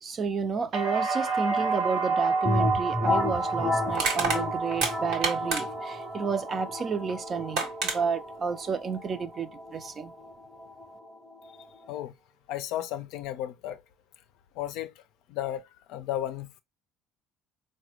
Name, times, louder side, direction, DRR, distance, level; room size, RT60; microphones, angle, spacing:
voice 1, 0.0-7.7 7.9-10.1, right 5 dB, 40° right, 0.5 m, -31 dB
sound 1, 0.7-8.6 9.0-9.7, right 4 dB, 60° right, 1.0 m, -31 dB
sound 2, 2.4-12.0, left 2 dB, 15° left, 0.6 m, -33 dB
Crushing, 2.6-2.7 3.9-5.9 7.1-7.2 7.5-8.0, right 4 dB, 80° right, 1.1 m, -28 dB
voice 2, 12.5-13.8 14.6-14.9 15.3-16.6, left 12 dB, 75° left, 0.4 m, -34 dB
3.9 x 2.2 x 2.9 m
supercardioid pair, 85°, 0 cm